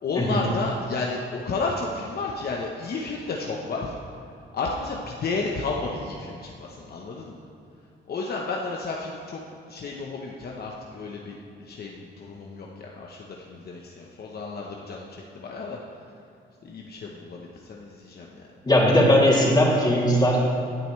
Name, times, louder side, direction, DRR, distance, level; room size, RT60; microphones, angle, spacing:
voice 1, 0.0-3.9 4.5-7.4 8.1-9.4 9.7-13.2 13.5-15.1 15.3-15.8 16.6-18.3, left 3 dB, 50° left, -1 dB, 1.1 m, -32 dB
voice 2, 18.6-20.4, left 1 dB, 20° left, -5 dB, 3.0 m, -19 dB
16.5 x 9.0 x 3.3 m, 2.7 s
cardioid pair, 90°, 20 cm